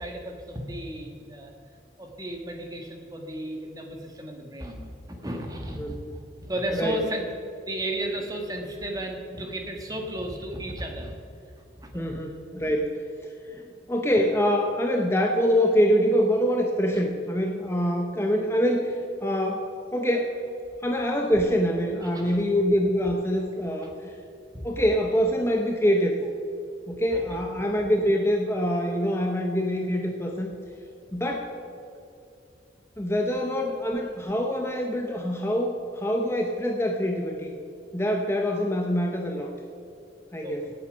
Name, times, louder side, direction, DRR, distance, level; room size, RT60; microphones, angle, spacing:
voice 1, 0.0-1.5 2.0-7.3 7.6-11.1 11.6-12.4 16.9-17.0 22.0-22.4 23.8-23.9 24.6-24.8 27.1-27.4 40.4-40.7, right 1 dB, 20° right, 2 dB, 1.6 m, -34 dB
voice 2, 5.8-6.1 6.7-7.0 11.9-20.3 20.8-24.2 24.6-26.2 26.9-30.5 31.1-31.5 33.0-37.5 37.9-39.5 40.3-40.7, equal, 15° left, 2 dB, 0.8 m, -25 dB
17.5 x 8.6 x 5.3 m, 2.6 s
head